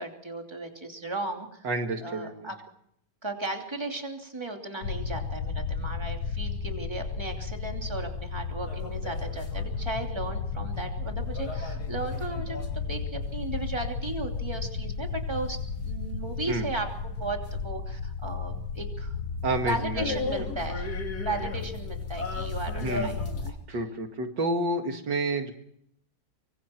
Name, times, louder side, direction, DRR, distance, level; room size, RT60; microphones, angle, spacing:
voice 1, 0.0-1.7 2.0-2.6 3.2-19.1 19.6-23.2 23.7-23.8, right 2 dB, 15° right, 2 dB, 2.9 m, -36 dB
voice 2, 1.6-2.5 16.5-16.7 19.4-20.5 22.8-23.2 23.7-25.5, right 2 dB, 85° right, 5 dB, 2.7 m, -30 dB
sound 1, 4.8-23.5, left 4 dB, 85° left, 2.0 m, -34 dB
sound 2, 8.6-9.9 11.3-13.0 17.5-17.6 19.7-23.5, left 3 dB, 60° left, 3.2 m, -37 dB
25.5 x 24.5 x 4.6 m, 0.71 s
omnidirectional pair, 1.9 m